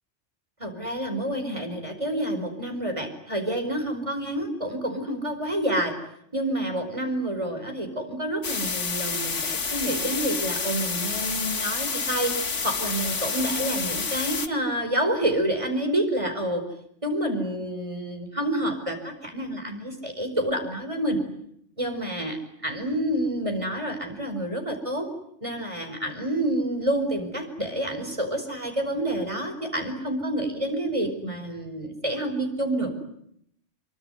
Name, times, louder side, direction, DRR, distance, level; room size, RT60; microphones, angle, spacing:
voice 1, 0.6-6.0 6.3-16.7 17.0-21.2 21.8-22.4 22.6-25.1 25.4-32.9, right 1 dB, 25° right, 5 dB, 5.1 m, -28 dB
sound 1, 8.4-14.5, left 5 dB, 85° left, 2.0 m, -29 dB
25.5 x 23.5 x 9.5 m, 0.73 s
omnidirectional pair, 1.2 m